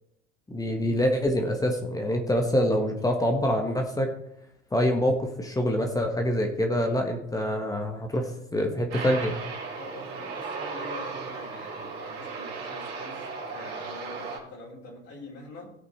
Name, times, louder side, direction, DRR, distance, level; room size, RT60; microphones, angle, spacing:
voice 1, 0.5-4.1 4.7-9.4, equal, 10° left, 3 dB, 1.5 m, -25 dB
Aircraft, 8.9-14.4, right 4 dB, 45° right, 3.7 m, -36 dB
voice 2, 9.7-15.7, left 2 dB, 40° left, -3 dB, 4.2 m, -44 dB
17.0 x 6.0 x 4.4 m, 0.79 s
figure-of-eight pair, 75°, 35 cm